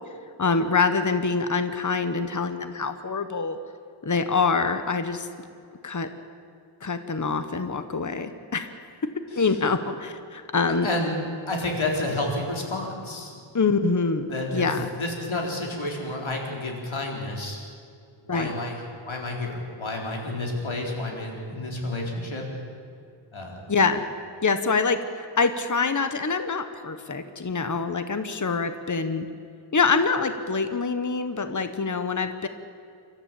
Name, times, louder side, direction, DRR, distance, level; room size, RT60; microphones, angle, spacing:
voice 1, 0.4-3.6 4.0-5.3 5.8-6.1 6.8-9.1 9.4-10.9 13.5-14.9 18.3-18.5 23.7-24.0 24.4-29.3 29.7-32.5, left 4 dB, 40° left, 9 dB, 1.2 m, -25 dB
voice 2, 10.7-11.2 11.5-13.4 14.3-17.6 18.2-18.8 19.1-22.4 23.3-23.7, left 2 dB, 90° left, 0 dB, 4.1 m, -30 dB
28.5 x 13.5 x 8.5 m, 2.4 s
wide cardioid pair, 90°, 46 cm